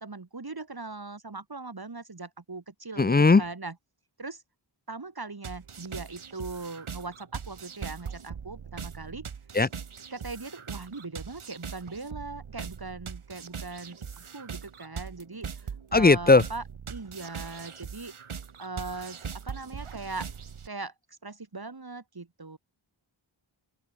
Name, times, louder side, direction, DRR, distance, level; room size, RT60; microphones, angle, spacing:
voice 1, 0.0-3.8 4.2-4.4 4.9-9.2 10.1-15.5 15.9-16.6 16.9-18.1 18.6-20.3 20.7-22.6, right 3 dB, 50° right, 2.4 m, -40 dB
voice 2, 3.0-3.4 9.5-9.7 15.9-16.4, left 3 dB, 20° left, 0.4 m, -18 dB
sound 1, 5.4-20.7, right 6 dB, 80° right, 1.3 m, -41 dB
open air
wide cardioid pair, 60°, 49 cm